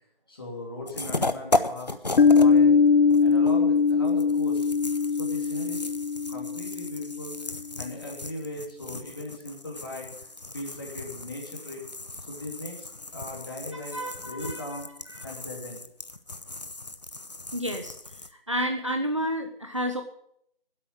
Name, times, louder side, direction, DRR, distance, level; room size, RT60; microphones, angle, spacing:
voice 1, 0.3-2.7 3.2-4.7 5.2-5.8 6.3-7.3 7.8-10.1 10.5-11.8 12.3-14.9 15.2-15.8, left 1 dB, 25° left, -2 dB, 2.8 m, -38 dB
sound 1, 0.9-2.6 2.8-18.3, left 2 dB, 45° left, 0.8 m, -35 dB
Piano, 2.2-7.5, left 5 dB, 70° left, 0.5 m, -21 dB
voice 2, 13.9-14.6 15.1-15.2 17.5-17.9 18.5-20.0, equal, 30° right, 5 dB, 0.9 m, -30 dB
11.0 x 8.3 x 9.4 m, 0.70 s
figure-of-eight pair, 170°, 29 cm